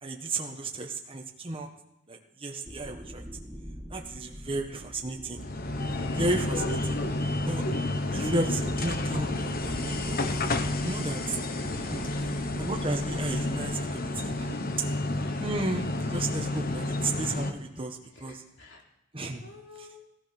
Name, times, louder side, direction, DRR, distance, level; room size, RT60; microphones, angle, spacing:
voice 1, 0.0-1.7 2.1-3.3 3.9-5.5 6.1-7.0 7.5-7.6 8.1-10.2 10.8-11.4 11.8-12.1 12.6-14.9 15.4-18.4 19.1-19.4 19.8-19.9, right 2 dB, 30° right, 1 dB, 1.5 m, -33 dB
sound 1, 2.6-14.4, equal, 10° right, 1.6 m, -44 dB
sound 2, 5.4-17.5, left 2 dB, 50° left, 1.3 m, -30 dB
voice 2, 12.0-12.5 14.8-15.0 17.8-18.8 19.2-20.1, left 3 dB, 65° left, 0 dB, 3.5 m, -50 dB
16.5 x 14.0 x 6.1 m, 0.86 s
head